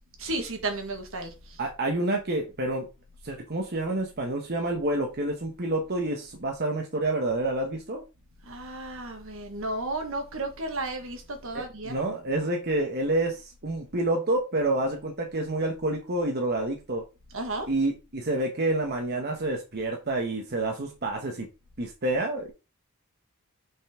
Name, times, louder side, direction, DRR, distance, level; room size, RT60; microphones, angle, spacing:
voice 1, 0.2-1.3 8.5-12.0 17.3-17.7, right 2 dB, 65° right, 1.5 m, -33 dB
voice 2, 1.6-2.9 3.2-8.0 11.5-17.0 17.7-21.5 21.8-22.5, right 2 dB, 50° right, 1.1 m, -28 dB
5.6 x 5.4 x 3.6 m
head